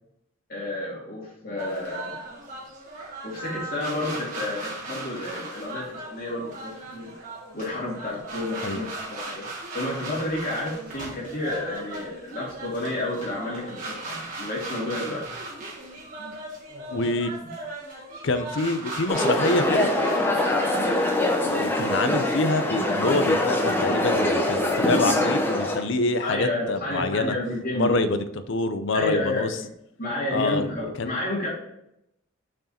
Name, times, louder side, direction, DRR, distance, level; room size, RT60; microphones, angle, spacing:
voice 1, 0.5-2.2 3.2-7.1 7.5-9.5 9.7-15.2 26.2-28.0 28.9-29.7 30.0-31.5, left 1 dB, 45° left, -5 dB, 2.6 m, -30 dB
sound 1, 1.6-21.3, right 2 dB, 40° right, 1.6 m, -37 dB
voice 2, 16.9-17.3 18.2-19.9 21.5-27.3 27.7-29.6 30.3-30.7 31.0-31.1, left 2 dB, 60° left, 10 dB, 0.6 m, -26 dB
sound 2, 19.1-25.8, left 1 dB, 10° left, 0.7 m, -23 dB
6.1 x 4.7 x 4.3 m, 0.81 s
head